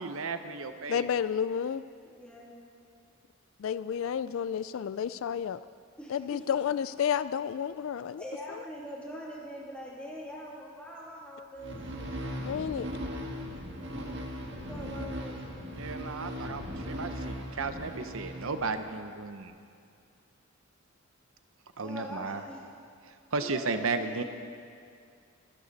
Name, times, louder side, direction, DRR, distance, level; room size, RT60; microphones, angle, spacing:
voice 1, 0.0-1.1 15.8-19.5 21.8-22.4 23.3-24.2, right 4 dB, 70° right, 8 dB, 0.8 m, -34 dB
voice 2, 0.9-1.8 3.6-5.6 6.1-8.2 8.5-8.6 12.4-12.9, left 8 dB, 65° left, 15 dB, 0.3 m, -31 dB
voice 3, 2.1-2.5 6.0-6.4 8.2-12.0 14.7-15.4 21.8-22.7 23.4-24.2, equal, 5° left, -5 dB, 2.6 m, -43 dB
sound 1, 11.6-19.0, equal, 55° right, 1.8 m, -38 dB
24.5 x 11.5 x 4.1 m, 2.3 s
head